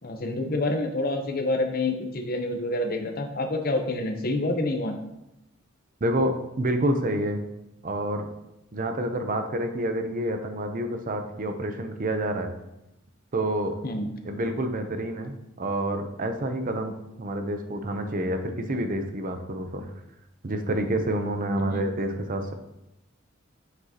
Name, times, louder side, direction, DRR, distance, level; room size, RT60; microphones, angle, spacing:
voice 1, 0.0-5.0 13.8-14.1 21.6-21.8, left 2 dB, 50° left, 4 dB, 0.9 m, -27 dB
voice 2, 6.0-7.4 7.8-8.3 8.7-12.5 13.3-13.7 14.2-16.9 17.2-19.8 20.4-22.5, right 1 dB, 45° right, 6 dB, 0.7 m, -28 dB
7.9 x 6.1 x 2.9 m, 0.88 s
head